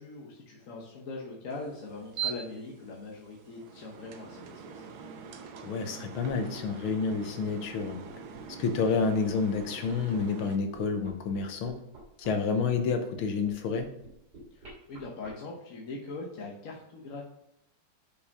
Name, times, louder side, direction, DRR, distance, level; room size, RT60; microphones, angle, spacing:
voice 1, 0.0-4.8 14.5-17.2, left 3 dB, 45° left, -2 dB, 1.2 m, -41 dB
sound 1, 1.5-10.6, right 7 dB, 80° right, 1.7 m, -43 dB
voice 2, 5.6-8.0 8.6-11.7 12.2-13.9, left 5 dB, 80° left, 7 dB, 1.7 m, -29 dB
sound 2, 6.2-15.3, right 2 dB, 55° right, 3.3 m, -48 dB
6.6 x 5.7 x 5.3 m, 0.79 s
omnidirectional pair, 2.3 m